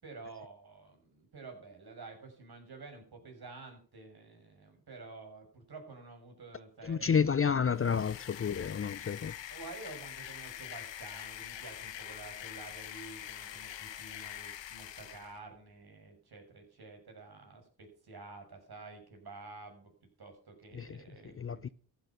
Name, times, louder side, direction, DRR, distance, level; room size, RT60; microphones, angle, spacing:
voice 1, 0.0-7.3 9.5-19.9 20.2-21.7, right 3 dB, 60° right, 6.7 m, -50 dB
voice 2, 6.8-9.3 20.7-21.0 21.4-21.7, left 6 dB, 30° left, 0.5 m, -30 dB
sound 1, 7.6-15.4, left 11 dB, 85° left, 1.3 m, -45 dB
15.0 x 9.3 x 5.9 m
cardioid pair, 75°, 43 cm